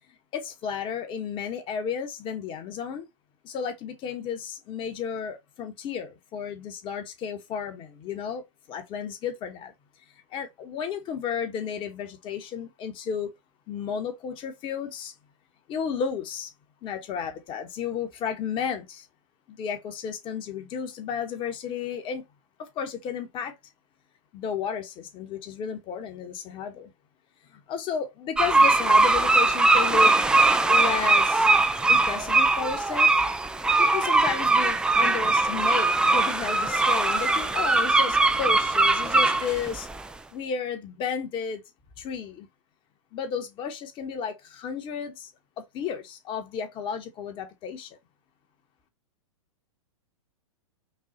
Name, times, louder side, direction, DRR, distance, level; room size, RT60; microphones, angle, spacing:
voice 1, 0.3-3.1 3.4-8.4 8.7-9.7 10.3-13.3 13.7-15.1 15.7-16.5 16.8-19.1 19.5-22.2 22.6-23.5 24.3-26.9 27.5-30.2 30.7-31.5 31.9-33.1 33.8-39.9 40.3-41.6 42.0-42.5 43.1-45.3 45.6-48.0, left 7 dB, 30° left, 1.2 m, -33 dB
sound 1, 28.4-40.0, right 3 dB, 5° right, 0.3 m, -21 dB
5.4 x 2.4 x 2.7 m
hypercardioid pair, 120°, 17 cm